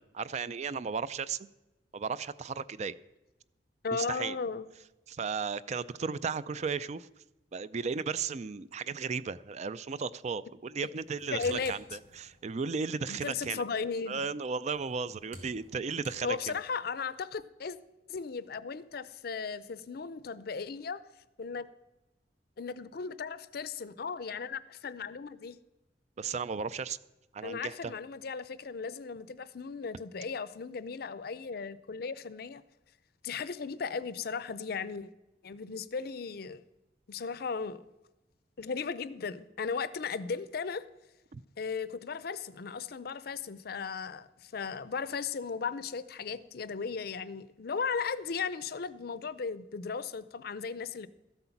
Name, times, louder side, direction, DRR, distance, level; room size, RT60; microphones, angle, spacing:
voice 1, 0.0-1.4 1.9-3.0 3.9-4.4 5.1-7.1 7.5-13.6 14.1-16.6 26.2-27.0 27.3-27.9 41.3-41.4, right 5 dB, 40° right, 16 dB, 0.4 m, -35 dB
voice 2, 3.8-4.7 11.3-11.7 13.1-14.2 16.2-17.8 18.1-21.0 21.4-21.7 22.6-25.6 27.4-32.6 33.2-35.1 35.4-36.6 37.1-37.8 38.6-40.8 41.6-51.1, left 5 dB, 60° left, 16 dB, 0.5 m, -36 dB
sound 1, 10.9-12.6 14.6-16.9, right 1 dB, 90° right, 3.2 m, -53 dB
13.5 x 7.9 x 5.8 m, 1.0 s
head